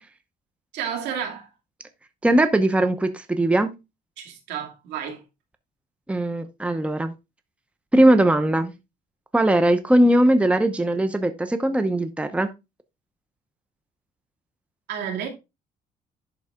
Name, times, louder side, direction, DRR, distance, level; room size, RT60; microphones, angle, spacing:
voice 1, 0.7-1.5 4.2-5.2 14.9-15.3, right 8 dB, 80° right, 2.5 m, -31 dB
voice 2, 2.2-3.7 6.1-7.1 7.9-8.7 9.3-12.5, right 1 dB, 5° right, 0.8 m, -19 dB
11.0 x 4.1 x 3.6 m
cardioid pair, 110°, 17 cm